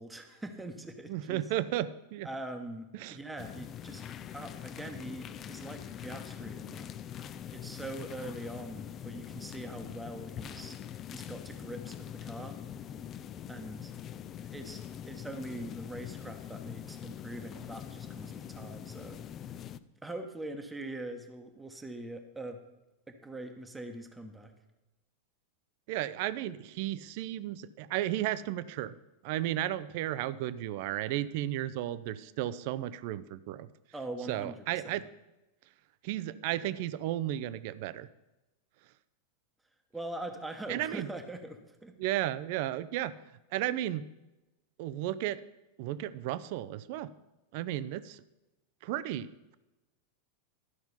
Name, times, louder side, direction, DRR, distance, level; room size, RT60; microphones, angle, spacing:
voice 1, 0.0-1.4 2.2-4.0 4.3-6.9 7.5-10.8 11.1-12.6 13.5-13.9 14.4-19.2 20.0-22.6 23.1-24.5 33.9-35.0 39.9-41.9, right 1 dB, 5° right, 5 dB, 1.0 m, -43 dB
voice 2, 1.1-2.3 2.9-3.2 25.9-28.9 29.2-33.7 34.3-35.0 36.0-38.1 40.7-41.1 42.0-43.1 43.5-44.0 44.8-45.4 45.8-47.1 47.5-48.2 48.8-49.3, right 13 dB, 50° right, 16 dB, 0.4 m, -34 dB
sound 1, 3.4-19.8, left 9 dB, 30° left, 0.4 m, -43 dB
12.0 x 5.7 x 5.5 m, 1.0 s
figure-of-eight pair, 90°, 0 cm